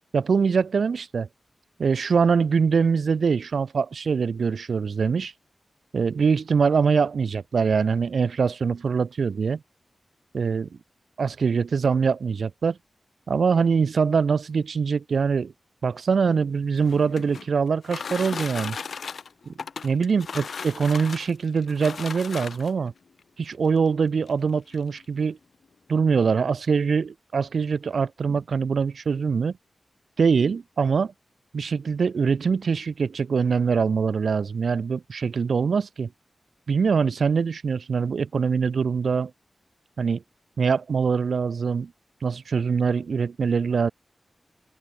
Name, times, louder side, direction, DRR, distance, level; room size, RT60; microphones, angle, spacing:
voice 1, 0.1-1.3 1.8-5.3 5.9-9.6 10.3-10.7 11.2-12.8 13.3-15.5 15.8-18.8 19.8-22.9 23.4-25.4 25.9-29.6 30.2-31.1 31.5-36.1 36.7-39.3 40.0-40.2 40.6-41.9 42.2-43.9, right 5 dB, 80° right, 0.4 m, -23 dB
sound 1, 16.7-22.9 23.8-23.9 24.3-24.4 24.7-25.1, left 5 dB, 85° left, 0.5 m, -36 dB
open air
wide cardioid pair, 120°, 0 cm